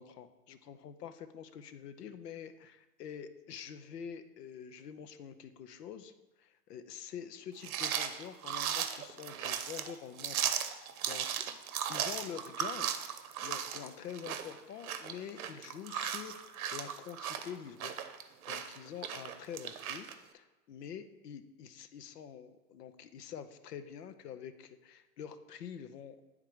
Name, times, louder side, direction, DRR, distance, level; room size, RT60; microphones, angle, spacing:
voice 1, 0.0-6.1 6.4-11.5 11.9-12.9 13.4-20.1 20.3-26.2, left 8 dB, 75° left, 11 dB, 0.8 m, -46 dB
sound 1, 7.6-20.2, right 9 dB, 60° right, 0.7 m, -37 dB
9.0 x 3.8 x 4.6 m, 1.1 s
hypercardioid pair, 130°, 48 cm